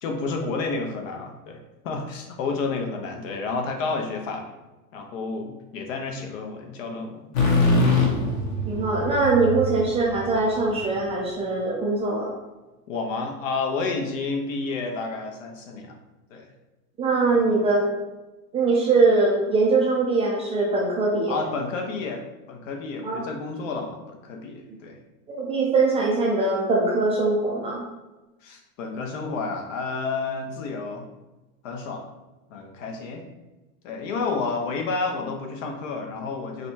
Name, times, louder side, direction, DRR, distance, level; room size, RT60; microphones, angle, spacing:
voice 1, 0.0-1.6 1.8-4.5 4.9-7.3 12.9-16.0 16.3-16.5 17.3-17.5 21.3-25.0 28.4-31.1 31.6-32.1 32.5-33.3 33.8-36.7, left 4 dB, 65° left, 3 dB, 1.0 m, -30 dB
sound 1, 7.3-11.1, left 2 dB, 40° left, 1.0 m, -23 dB
voice 2, 8.4-12.3 17.0-17.9 18.5-21.4 23.0-23.2 25.3-27.8, right 3 dB, 15° right, -3 dB, 0.4 m, -22 dB
5.2 x 2.3 x 2.8 m, 1.1 s
hypercardioid pair, 125°, 42 cm